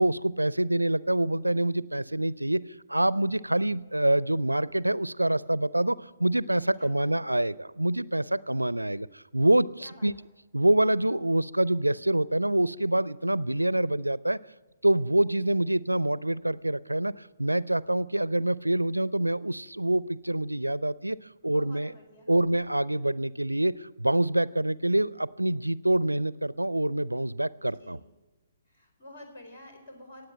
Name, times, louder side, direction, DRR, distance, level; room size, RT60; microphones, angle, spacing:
voice 1, 0.0-2.6 2.9-10.1 10.5-14.4 14.8-17.1 17.4-21.2 21.4-21.9 22.3-28.0, right 1 dB, 85° right, 20 dB, 0.4 m, -26 dB
voice 2, 6.8-7.3 9.8-10.3 21.4-22.3 27.6-28.1 28.7-30.3, left 1 dB, 50° left, 3 dB, 4.5 m, -50 dB
19.0 x 7.9 x 7.4 m, 1.2 s
figure-of-eight pair, 125°, 0 cm